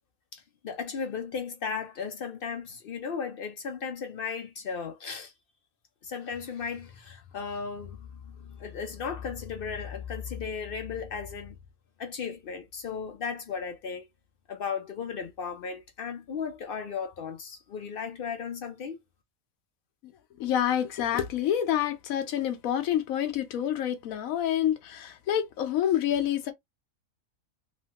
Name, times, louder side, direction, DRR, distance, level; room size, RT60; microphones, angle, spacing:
voice 1, 0.3-5.3 6.0-11.6 12.0-14.1 14.5-19.0, left 6 dB, 65° left, 0.5 m, -36 dB
voice 2, 20.4-26.5, left 10 dB, 80° left, 1.1 m, -27 dB
3.1 x 2.1 x 2.8 m
omnidirectional pair, 1.4 m